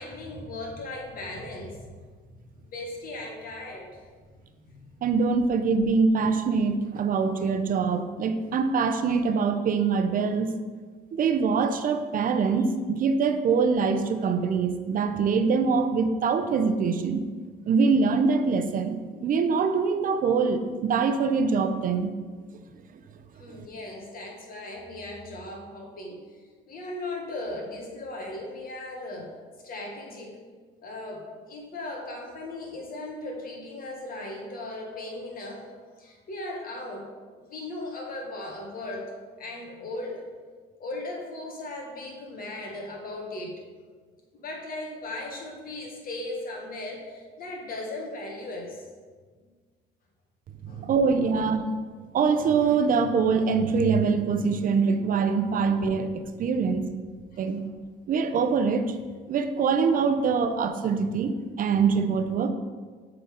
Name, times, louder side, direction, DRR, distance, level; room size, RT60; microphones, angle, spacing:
voice 1, 0.0-1.9 2.7-4.0 4.6-4.8 12.5-12.6 23.3-26.2 26.7-29.3 29.6-30.4 30.8-37.1 37.4-39.1 39.4-40.3 40.8-43.6 44.3-48.8 49.4-49.5 50.6-50.9 51.2-51.5 55.7-55.9 56.6-56.8 57.3-57.7 60.1-60.2, left 2 dB, 50° left, 0 dB, 1.7 m, -37 dB
voice 2, 5.0-10.5 11.1-17.2 17.7-22.1 50.6-51.7 52.1-56.8 57.4-57.6 58.1-58.9 59.3-62.5, right 5 dB, 50° right, 9 dB, 0.6 m, -24 dB
7.0 x 4.0 x 5.1 m, 1.5 s
cardioid pair, 100°, 18 cm